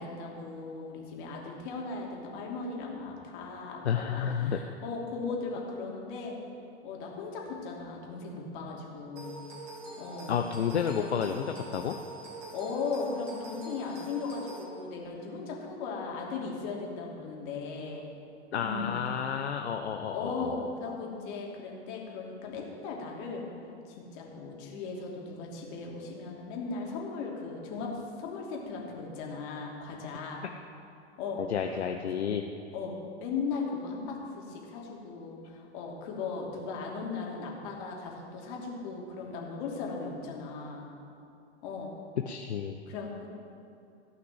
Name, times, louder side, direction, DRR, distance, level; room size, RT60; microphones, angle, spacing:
voice 1, 0.0-6.4 6.8-9.5 10.0-10.4 11.0-11.1 12.5-18.1 18.6-18.9 20.1-23.5 23.9-30.5 31.2-31.4 31.7-32.2 32.7-32.9 33.2-40.9 41.6-41.9 42.9-43.3, left 4 dB, 50° left, -1 dB, 2.7 m, -37 dB
voice 2, 3.8-4.6 10.3-12.0 18.5-20.5 31.4-32.4 42.2-42.8, left 8 dB, 75° left, 5 dB, 0.7 m, -31 dB
sound 1, 9.2-14.6, right 1 dB, 40° right, 3.4 m, -44 dB
15.0 x 5.9 x 7.8 m, 2.6 s
figure-of-eight pair, 95°, 33 cm